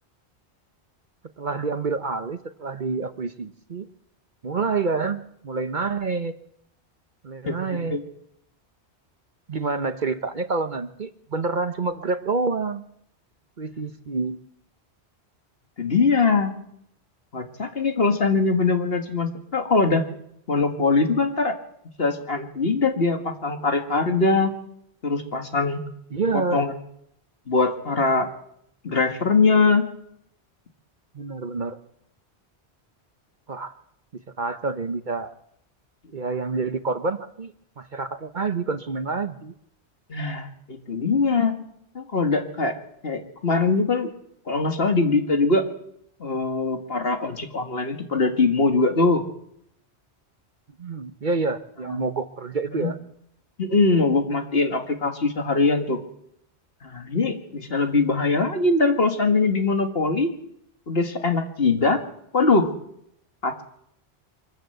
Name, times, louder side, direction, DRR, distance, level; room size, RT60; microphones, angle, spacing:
voice 1, 1.4-3.9 4.4-6.4 7.2-8.0 9.5-12.8 13.6-14.4 26.1-26.6 31.1-31.8 33.5-33.8 34.1-35.3 36.1-39.5 50.8-53.0, right 4 dB, 50° right, 10 dB, 1.0 m, -28 dB
voice 2, 7.4-8.0 15.8-16.5 17.3-20.0 20.5-21.5 22.0-24.5 25.0-25.8 26.5-26.7 27.5-28.3 28.8-29.8 40.1-41.5 42.0-42.8 43.0-44.1 44.5-45.6 46.2-49.2 52.8-52.9 53.6-56.0 56.8-60.3 60.9-62.0 62.3-62.7 63.4-63.6, left 3 dB, 60° left, 6 dB, 2.1 m, -22 dB
24.5 x 13.5 x 7.9 m, 0.73 s
omnidirectional pair, 1.1 m